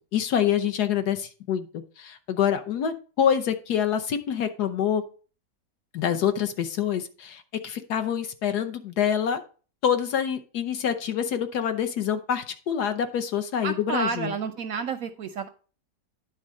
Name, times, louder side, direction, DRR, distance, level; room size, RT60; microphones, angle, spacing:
voice 1, 0.1-1.7 2.0-5.0 5.9-9.4 9.8-14.3, left 8 dB, 65° left, 8 dB, 1.4 m, -26 dB
voice 2, 13.6-15.5, right 5 dB, 70° right, 9 dB, 0.8 m, -30 dB
10.0 x 3.9 x 6.3 m, 0.38 s
omnidirectional pair, 1.9 m